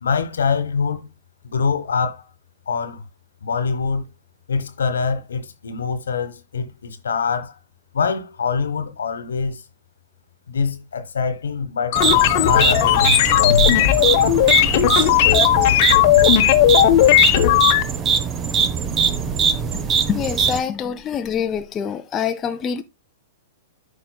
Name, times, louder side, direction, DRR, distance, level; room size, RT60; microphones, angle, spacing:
voice 1, 0.0-1.1 1.4-2.2 2.7-3.1 3.4-4.1 4.5-7.5 7.9-9.6 10.5-12.0 12.5-14.0, left 5 dB, 65° left, 1.2 m, -24 dB
sound 1, 11.9-17.8, left 13 dB, 45° left, 1.0 m, -16 dB
sound 2, 12.0-20.6, right 6 dB, 25° right, 0.8 m, -21 dB
voice 2, 20.1-22.8, left 7 dB, 20° left, 0.6 m, -25 dB
13.5 x 5.0 x 2.3 m
figure-of-eight pair, 105°, 0 cm